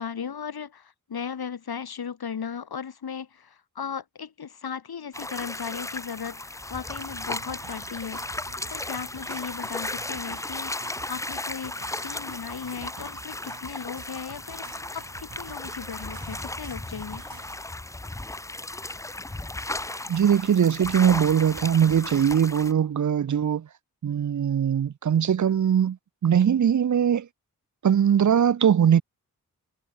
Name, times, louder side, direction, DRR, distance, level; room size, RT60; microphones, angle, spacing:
voice 1, 0.0-8.3 8.7-17.2, left 7 dB, 80° left, 2.9 m, -37 dB
sound 1, 5.1-22.7, left 2 dB, 10° left, 0.5 m, -35 dB
sound 2, 7.0-17.6, right 7 dB, 70° right, 2.1 m, -48 dB
voice 2, 20.1-23.7 24.0-26.0 26.2-27.3 27.8-29.0, right 8 dB, 55° right, 0.6 m, -21 dB
cardioid pair, 65°, 37 cm